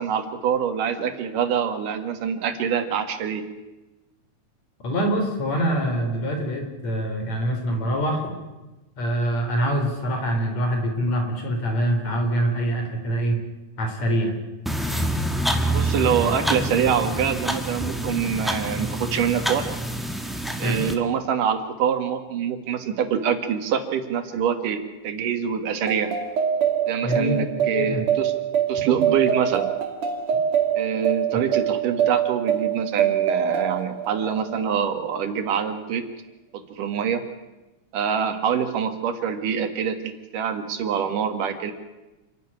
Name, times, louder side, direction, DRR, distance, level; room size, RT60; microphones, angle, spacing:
voice 1, 0.0-3.4 15.7-19.7 20.6-26.1 26.9-28.3 28.7-29.7 30.7-36.0 36.5-37.2 37.9-41.7, right 7 dB, 80° right, 8 dB, 3.3 m, -25 dB
voice 2, 4.8-8.4 9.0-13.4 13.8-14.3 20.6-20.8 27.0-28.0, equal, 55° left, 4 dB, 4.8 m, -25 dB
sound 1, 14.6-20.9, right 1 dB, ahead, 0.8 m, -26 dB
sound 2, 25.8-34.8, right 9 dB, 55° right, 3.2 m, -24 dB
27.5 x 12.0 x 10.0 m, 1.1 s
omnidirectional pair, 3.7 m